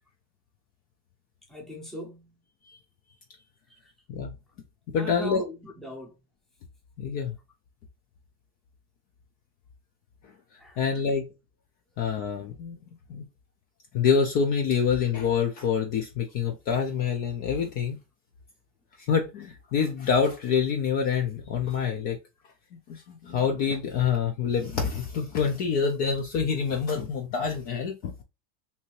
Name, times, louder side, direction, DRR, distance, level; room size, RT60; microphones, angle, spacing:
voice 1, 1.5-2.4 3.8-3.9 5.0-6.2 10.6-11.0, equal, ahead, 0.7 m, -40 dB
voice 2, 4.9-5.4 7.0-7.3 10.8-11.3 12.0-12.8 13.1-13.3 13.9-18.0 19.0-22.2 22.9-28.2, left 6 dB, 40° left, 0.5 m, -26 dB
2.8 x 2.6 x 3.0 m
supercardioid pair, 150°, 48 cm